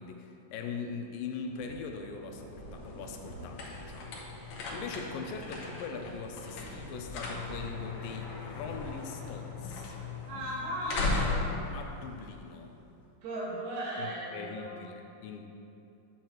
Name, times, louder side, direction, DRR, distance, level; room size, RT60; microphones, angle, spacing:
voice 1, 0.0-4.1 4.7-10.0 11.7-12.7 14.0-15.4, left 5 dB, 90° left, 3 dB, 2.4 m, -41 dB
sound 1, 1.4-9.3, right 2 dB, 50° right, 1.4 m, -51 dB
sound 2, 2.2-12.9, left 3 dB, 65° left, 2.1 m, -38 dB
voice 2, 10.2-11.6 13.2-14.7, right 1 dB, 75° right, -7 dB, 3.4 m, -36 dB
10.0 x 7.4 x 3.0 m, 2.7 s
omnidirectional pair, 3.9 m